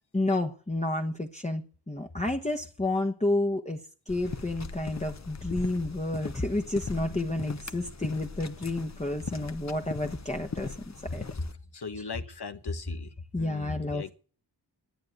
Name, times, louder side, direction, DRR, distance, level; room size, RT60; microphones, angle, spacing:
voice 1, 0.1-11.2 12.0-12.1 13.3-14.1, left 2 dB, 15° left, 1.2 m, -30 dB
sound 1, 4.1-11.5, left 4 dB, 40° left, 1.0 m, -40 dB
voice 2, 6.9-7.3 11.7-14.1, left 5 dB, 65° left, 1.4 m, -41 dB
11.5 x 9.3 x 9.4 m
wide cardioid pair, 65°, 43 cm